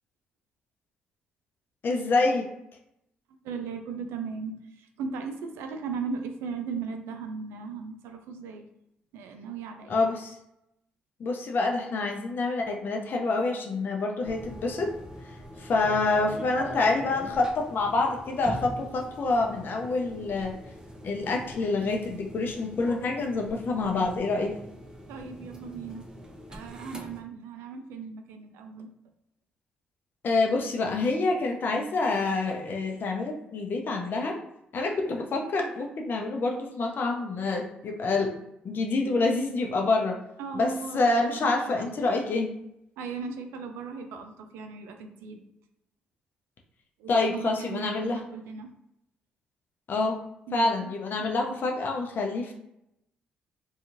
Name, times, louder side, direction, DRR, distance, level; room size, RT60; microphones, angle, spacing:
voice 1, 1.8-2.5 9.9-10.3 11.2-14.9 15.6-20.5 21.0-24.5 30.2-34.3 34.7-38.3 38.6-40.2 40.5-42.5 47.1-48.2 49.9-50.2 50.5-52.5, left 3 dB, 50° left, 1 dB, 0.6 m, -27 dB
voice 2, 3.3-8.7 9.1-10.1 25.1-26.1 26.5-28.9 40.4-42.0 43.0-45.4 47.0-48.7 50.5-50.9 51.2-51.6, right 5 dB, 75° right, 5 dB, 0.4 m, -37 dB
sound 1, 14.2-27.2, equal, 15° right, 0.6 m, -43 dB
2.8 x 2.3 x 2.6 m, 0.82 s
hypercardioid pair, 45°, 4 cm